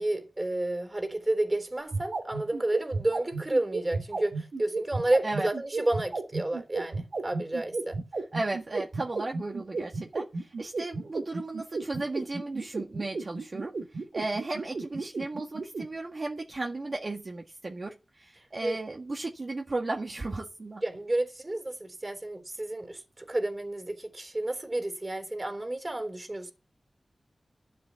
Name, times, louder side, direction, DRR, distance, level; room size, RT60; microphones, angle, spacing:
voice 1, 0.0-8.0 18.6-18.8 20.8-26.5, right 1 dB, 35° right, 3.6 m, -31 dB
sound 1, 1.8-15.8, right 3 dB, 80° right, 2.8 m, -32 dB
voice 2, 8.3-20.8, right 2 dB, 60° right, 1.7 m, -35 dB
12.5 x 7.8 x 7.0 m
cardioid pair, 40°, 0 cm